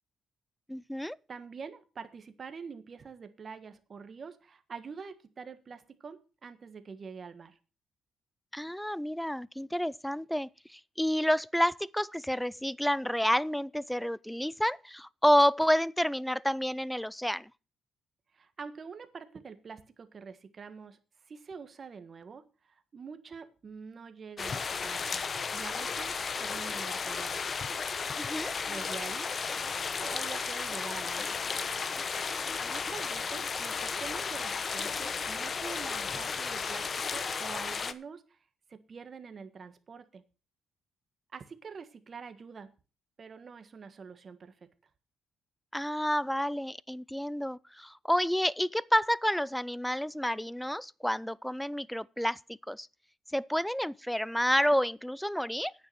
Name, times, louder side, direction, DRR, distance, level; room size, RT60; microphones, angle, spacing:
voice 1, 0.7-1.2 8.5-17.5 28.2-28.5 45.7-52.4 52.7-52.9 53.3-55.7, equal, 5° left, 0.4 m, -29 dB
voice 2, 1.3-7.6 18.3-21.0 21.3-26.1 26.4-27.5 28.7-29.3 30.0-31.4 32.6-38.4 38.7-40.2 41.3-42.7 43.2-44.7, right 5 dB, 45° right, 1.4 m, -45 dB
sound 1, 24.4-37.9, left 5 dB, 40° left, 0.8 m, -34 dB
9.5 x 6.8 x 7.4 m
cardioid pair, 90°, 0 cm